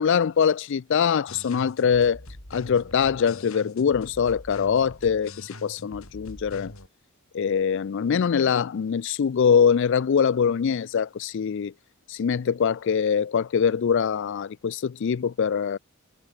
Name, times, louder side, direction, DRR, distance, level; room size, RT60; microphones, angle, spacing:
voice 1, 0.0-2.2 2.5-6.7 7.3-11.7 12.1-15.8, left 7 dB, 55° left, 0.4 m, -23 dB
sound 1, 1.3-6.9, left 2 dB, 70° left, 5.0 m, -43 dB
head